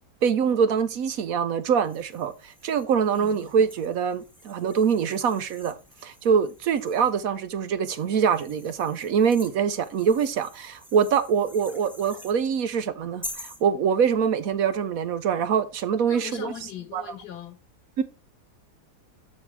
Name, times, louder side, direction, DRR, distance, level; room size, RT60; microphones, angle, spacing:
voice 1, 0.2-5.8 6.0-16.5 16.9-17.0 18.0-18.1, right 7 dB, 65° right, 1.0 m, -24 dB
sound 1, 1.7-7.3 7.9-12.4 13.2-13.6, equal, ahead, 1.0 m, -46 dB
voice 2, 16.1-17.6, left 8 dB, 75° left, 1.9 m, -39 dB
12.5 x 4.9 x 3.3 m
omnidirectional pair, 1.7 m